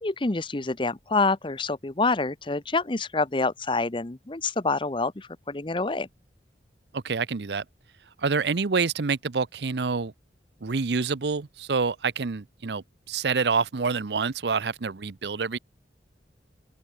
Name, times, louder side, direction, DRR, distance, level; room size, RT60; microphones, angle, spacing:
voice 1, 0.0-6.1, left 3 dB, 30° left, 0.8 m, -27 dB
voice 2, 6.9-7.6 8.2-10.1 10.6-15.6, right 5 dB, 70° right, 0.7 m, -27 dB
open air
head